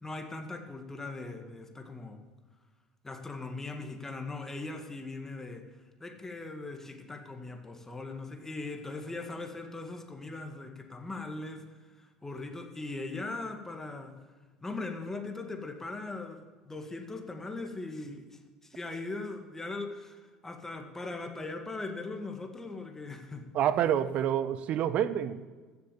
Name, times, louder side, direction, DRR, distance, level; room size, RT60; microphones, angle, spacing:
voice 1, 0.0-2.2 3.0-5.7 6.0-11.6 12.0-14.1 14.6-23.5, left 3 dB, 15° left, 5 dB, 1.9 m, -40 dB
voice 2, 23.5-25.5, right 10 dB, 50° right, 15 dB, 0.8 m, -28 dB
15.5 x 7.0 x 7.2 m, 1.4 s
hypercardioid pair, 70°, 3 cm